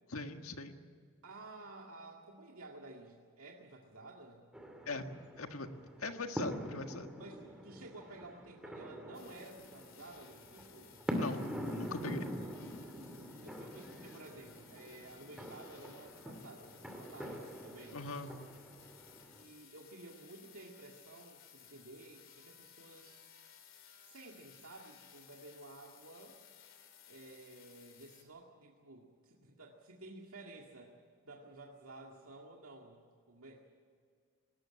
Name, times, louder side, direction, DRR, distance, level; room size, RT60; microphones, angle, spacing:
voice 1, 0.1-0.7 4.9-5.0 5.4-5.7 6.0-7.1 11.2-11.4 11.7-12.3 17.9-18.4, left 3 dB, 85° left, 6 dB, 1.7 m, -40 dB
voice 2, 1.2-4.5 7.2-11.0 12.9-18.1 19.3-23.3 24.0-26.4 27.1-31.0 31.2-33.7, right 2 dB, 85° right, -1 dB, 2.1 m, -53 dB
sound 1, 4.5-19.4, equal, 5° right, 2.5 m, -44 dB
sound 2, 9.1-28.2, left 8 dB, 65° left, 3.2 m, -59 dB
19.5 x 18.5 x 8.8 m, 2.1 s
head